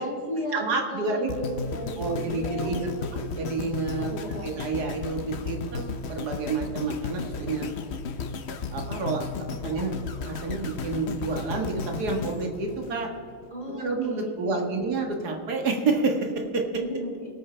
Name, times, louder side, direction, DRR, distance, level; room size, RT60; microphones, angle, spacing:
voice 1, 0.0-2.8 4.0-4.5 13.5-14.8 16.7-17.3, equal, 20° left, -5 dB, 3.8 m, -35 dB
voice 2, 0.5-1.3 2.0-7.7 8.7-9.3 9.6-9.9 10.2-13.1 13.7-16.6, right 3 dB, 50° right, 2 dB, 2.0 m, -29 dB
sound 1, 1.3-13.5 14.0-14.1, left 4 dB, 85° left, 0.5 m, -34 dB
23.5 x 9.1 x 3.3 m, 2.3 s
omnidirectional pair, 2.2 m